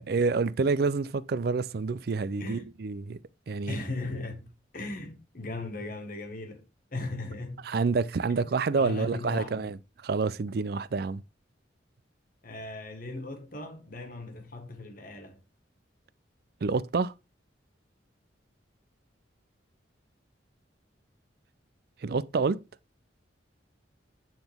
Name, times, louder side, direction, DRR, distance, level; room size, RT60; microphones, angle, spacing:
voice 1, 0.1-3.2 3.5-3.8 7.7-9.8 10.0-11.2 16.6-17.1 22.0-22.6, right 4 dB, 55° right, 0.4 m, -28 dB
voice 2, 2.4-2.7 3.7-6.6 6.9-7.8 8.8-9.7 12.4-15.4, left 2 dB, 45° left, 1.5 m, -38 dB
9.3 x 3.9 x 3.5 m
head